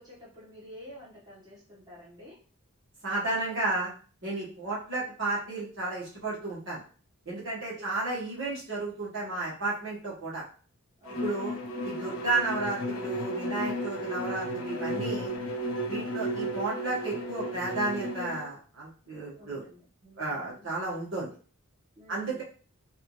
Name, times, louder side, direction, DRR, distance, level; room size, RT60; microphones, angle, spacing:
voice 1, 0.0-2.4 7.5-8.1 11.0-11.5 15.9-16.3 19.4-20.7 21.9-22.4, left 1 dB, 15° right, -8 dB, 1.6 m, -50 dB
voice 2, 3.0-3.9 4.2-6.8 7.2-10.4 11.2-11.5 11.8-15.3 15.9-19.6 20.2-21.3 22.1-22.4, right 2 dB, 55° right, -7 dB, 1.7 m, -32 dB
Bowed string instrument, 11.0-18.5, equal, 75° left, 0.9 m, -33 dB
4.5 x 2.7 x 3.3 m, 0.41 s
head